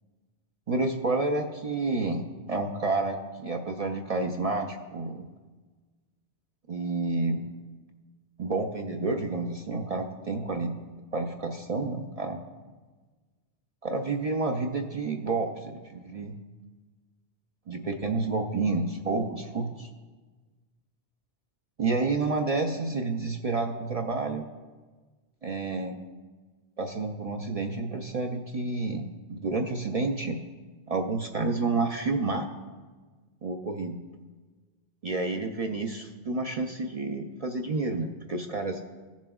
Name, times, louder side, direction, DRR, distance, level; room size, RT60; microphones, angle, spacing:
voice 1, 0.7-2.2 2.5-5.3 6.7-7.5 8.4-10.8 11.1-12.4 13.8-16.3 17.7-19.9 21.8-24.5 25.4-26.0 26.8-30.4 30.9-32.5 33.4-34.0 35.0-38.8, right 3 dB, 50° right, 3 dB, 0.4 m, -29 dB
15.5 x 7.2 x 2.3 m, 1.4 s
omnidirectional pair, 1.2 m